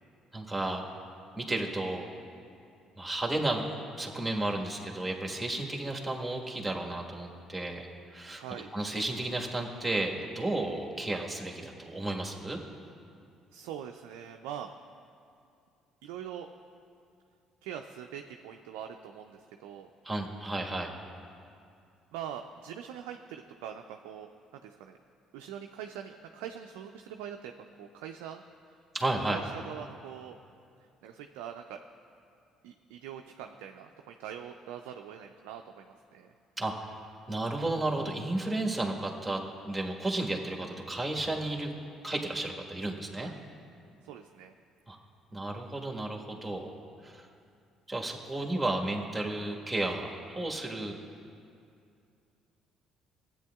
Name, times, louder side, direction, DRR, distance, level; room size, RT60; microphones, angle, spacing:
voice 1, 0.3-0.9 1.3-2.1 3.0-3.7 4.0-7.9 8.1-8.4 8.7-12.6 20.0-20.9 28.9-29.4 36.6-36.7 37.3-41.7 42.0-43.3 44.9-45.0 45.3-46.7 47.0-47.3 47.9-50.9, right 2 dB, 10° right, 0 dB, 1.4 m, -33 dB
voice 2, 8.3-8.7 13.5-14.7 16.0-16.5 17.6-19.9 22.1-24.3 24.6-25.0 25.3-28.8 29.3-30.4 31.0-31.8 32.6-36.3 43.2-43.4 44.0-44.5, right 9 dB, 80° right, 4 dB, 0.3 m, -43 dB
15.0 x 8.5 x 2.3 m, 2.5 s
hypercardioid pair, 60°, 0 cm